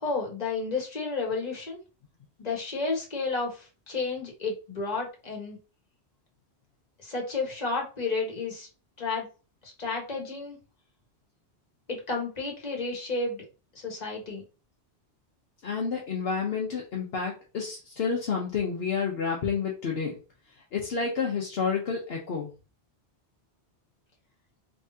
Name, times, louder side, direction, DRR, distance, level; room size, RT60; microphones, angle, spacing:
voice 1, 0.0-1.8 2.4-5.6 7.0-8.7 9.0-9.3 9.6-10.6 11.9-13.4 13.7-14.4, left 3 dB, 40° left, 0 dB, 1.3 m, -31 dB
voice 2, 15.6-20.2 20.7-22.5, left 5 dB, 65° left, -1 dB, 1.0 m, -29 dB
3.6 x 3.2 x 2.7 m, 0.33 s
omnidirectional pair, 1.1 m